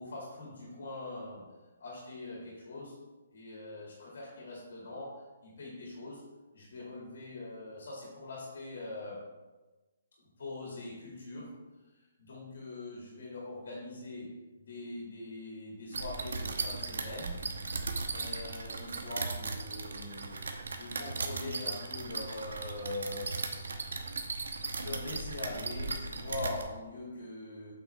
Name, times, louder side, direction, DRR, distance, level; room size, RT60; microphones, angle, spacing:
voice 1, 0.0-1.5 1.8-3.0 3.3-6.3 6.5-9.3 10.4-11.6 12.2-20.4 20.8-23.4 24.4-27.7, left 2 dB, 60° left, -3 dB, 2.3 m, -43 dB
sound 1, 15.9-26.6, right 3 dB, 85° right, 1.0 m, -37 dB
7.6 x 5.9 x 3.4 m, 1.2 s
hypercardioid pair, 180°, 0 cm